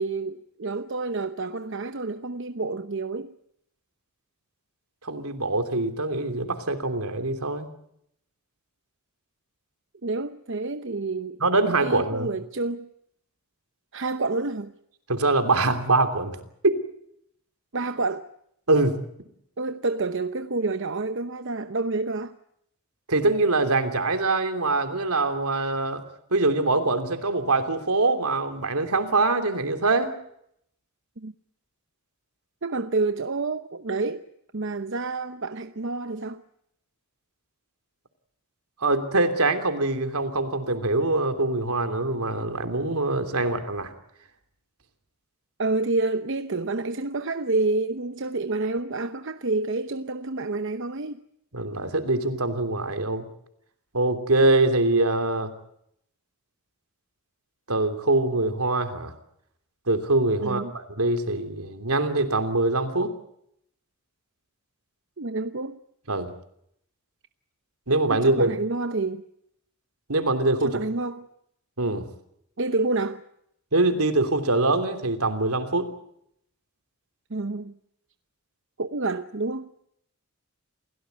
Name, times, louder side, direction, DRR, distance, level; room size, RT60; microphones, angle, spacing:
voice 1, 0.0-3.3 10.0-11.4 11.8-12.9 13.9-14.7 17.7-18.2 19.6-22.4 31.2-31.3 32.6-34.2 34.5-36.4 45.6-51.2 60.4-60.7 65.2-65.8 68.1-69.2 70.6-71.2 72.6-73.2 77.3-77.7 78.8-79.7, right 3 dB, 55° right, 0.9 m, -28 dB
voice 2, 5.0-7.7 11.4-12.3 15.1-16.4 16.6-16.8 18.7-19.0 23.1-26.0 26.3-30.1 38.8-43.9 51.5-53.3 53.9-55.5 57.7-59.1 59.9-63.1 66.1-66.3 67.9-68.5 70.1-70.8 71.8-72.0 73.7-75.9, right 2 dB, 80° right, 3.1 m, -23 dB
28.5 x 17.5 x 8.1 m
head